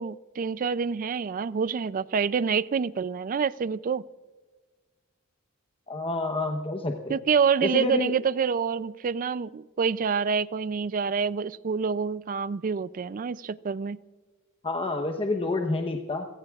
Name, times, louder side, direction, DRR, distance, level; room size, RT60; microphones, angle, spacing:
voice 1, 0.0-4.0 7.1-14.0, right 6 dB, 40° right, 17 dB, 0.4 m, -27 dB
voice 2, 5.9-7.2 7.6-8.1 14.6-16.3, left 2 dB, 25° left, 3 dB, 0.9 m, -28 dB
30.0 x 16.5 x 2.4 m, 1.3 s
head